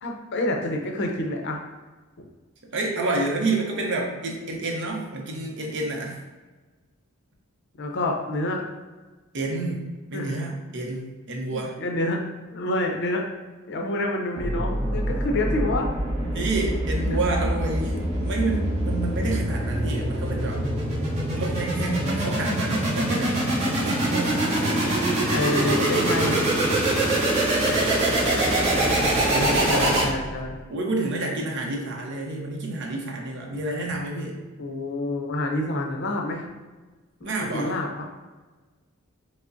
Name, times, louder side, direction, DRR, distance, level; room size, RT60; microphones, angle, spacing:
voice 1, 0.0-1.6 7.8-8.6 10.1-10.3 11.5-12.2 12.5-13.3 13.7-15.9 17.1-17.2 18.8-19.0 25.3-26.5 29.4-30.6 34.6-36.5 37.2-38.0, left 1 dB, 55° left, 1 dB, 0.5 m, -28 dB
voice 2, 2.7-6.2 9.3-9.8 10.1-11.8 16.3-20.6 21.3-26.5 28.6-30.0 30.7-34.4 37.2-37.7, right 2 dB, 60° right, 0 dB, 0.7 m, -29 dB
sound 1, 14.4-30.5, right 1 dB, 30° right, 0.9 m, -24 dB
4.9 x 2.0 x 2.5 m, 1.3 s
head